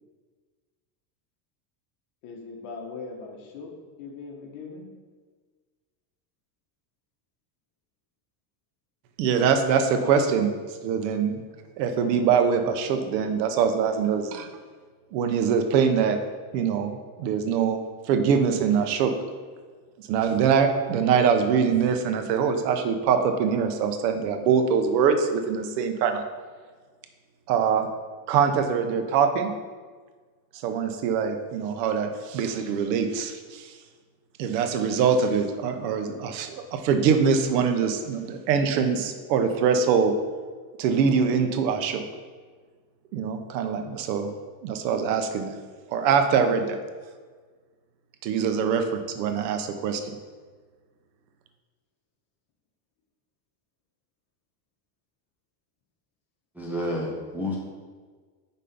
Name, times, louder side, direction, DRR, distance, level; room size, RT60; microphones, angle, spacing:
voice 1, 2.2-3.7 4.0-4.9 12.0-12.2, left 4 dB, 55° left, 0 dB, 1.4 m, -40 dB
voice 2, 9.2-10.6 10.8-11.5 11.8-14.5 15.1-16.2 16.5-17.8 18.1-19.1 20.0-26.2 27.5-27.9 28.3-29.5 30.6-33.7 34.4-40.2 40.8-42.0 43.1-44.3 44.6-45.5 45.9-46.8 48.2-50.2, right 6 dB, 85° right, 7 dB, 0.9 m, -23 dB
voice 3, 56.5-57.6, left 1 dB, 5° right, -4 dB, 0.5 m, -29 dB
5.3 x 4.2 x 5.1 m, 1.5 s
cardioid pair, 155°, 49 cm